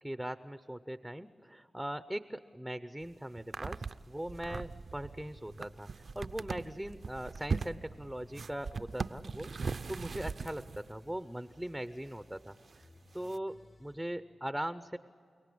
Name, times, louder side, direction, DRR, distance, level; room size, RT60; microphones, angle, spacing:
voice 1, 0.0-5.9 6.1-12.6 13.1-15.0, right 1 dB, 5° right, 11 dB, 0.7 m, -40 dB
sound 1, 3.0-3.1 3.4-10.9 11.9-12.0 12.6-12.8 13.2-13.4, right 4 dB, 60° right, 0.5 m, -40 dB
sound 2, 3.5-4.6 5.1-7.5 7.8-14.1, left 1 dB, 45° left, 5.4 m, -61 dB
29.5 x 18.0 x 8.6 m, 2.4 s
cardioid pair, 70°, 0 cm